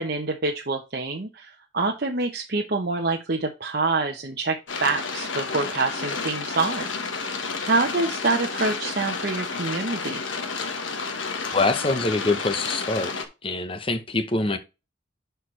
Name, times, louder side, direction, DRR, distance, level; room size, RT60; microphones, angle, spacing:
voice 1, 0.0-10.2, right 3 dB, 50° right, 0.9 m, -26 dB
sound 1, 4.7-13.3, left 4 dB, 85° left, 1.3 m, -31 dB
voice 2, 11.5-13.1 13.4-14.6, left 2 dB, 30° left, 0.8 m, -24 dB
10.5 x 4.5 x 3.3 m
head